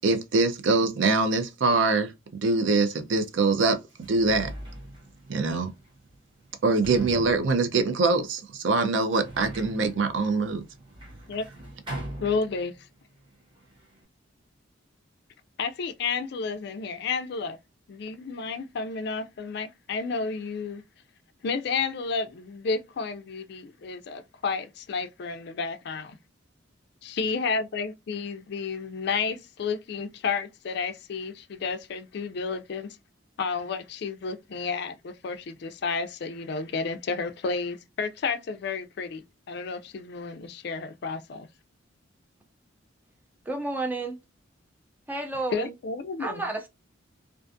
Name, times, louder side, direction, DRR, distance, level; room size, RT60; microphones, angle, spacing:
voice 1, 0.0-2.1 2.4-3.8 4.1-4.5 5.3-5.7 6.6-10.6, right 3 dB, 70° right, 0.5 m, -23 dB
Sliding door, 3.1-3.2 3.8-13.0 13.2-14.1, right 1 dB, 25° right, 1.1 m, -42 dB
voice 2, 12.2-12.8 15.6-17.6 17.9-20.8 21.4-26.2 27.0-33.0 33.4-41.5 45.5-46.4, left 5 dB, 55° left, 0.3 m, -31 dB
voice 3, 43.5-44.1 45.1-45.7 46.2-46.7, right 2 dB, 10° right, 0.4 m, -31 dB
2.4 x 2.3 x 2.5 m
head